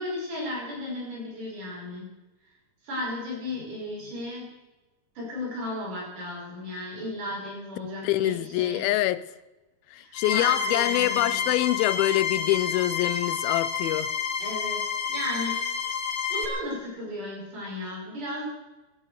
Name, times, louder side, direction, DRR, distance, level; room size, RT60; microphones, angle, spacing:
voice 1, 0.0-2.1 2.8-4.5 5.2-9.0 10.0-11.5 14.4-14.8 15.1-15.9 16.3-18.5, left 1 dB, 60° right, 7.2 m, -35 dB
voice 2, 8.0-9.3 9.9-14.1, left 15 dB, 90° left, 2.5 m, -25 dB
sound 1, 10.1-16.4, left 6 dB, 50° left, 2.2 m, -29 dB
17.5 x 11.5 x 6.5 m
omnidirectional pair, 4.2 m